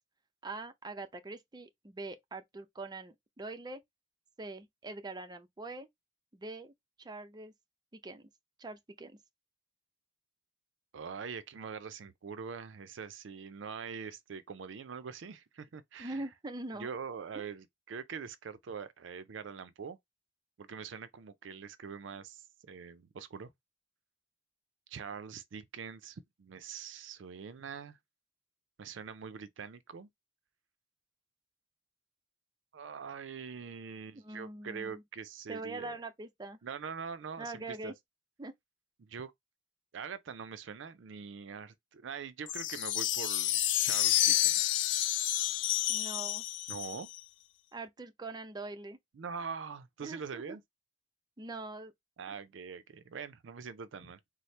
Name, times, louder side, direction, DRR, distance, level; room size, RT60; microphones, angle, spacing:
voice 1, 0.4-3.8 4.4-5.9 6.3-6.7 7.0-7.5 7.9-8.3 8.6-9.2 16.0-16.9 17.3-17.4 34.1-35.0 35.5-36.6 37.4-37.9 38.4-38.5 45.9-46.4 47.7-49.0 50.0-50.4 51.4-51.9, right 2 dB, 20° right, 0.5 m, -43 dB
voice 2, 10.9-16.3 16.7-20.0 20.6-23.5 24.9-28.0 28.8-30.1 32.7-36.0 36.6-37.9 39.0-39.3 39.9-44.7 46.7-47.1 49.1-50.6 52.2-54.2, right 6 dB, 75° right, 0.4 m, -43 dB
sound 1, 42.5-47.2, left 13 dB, 70° left, 0.4 m, -29 dB
4.2 x 2.0 x 3.1 m
head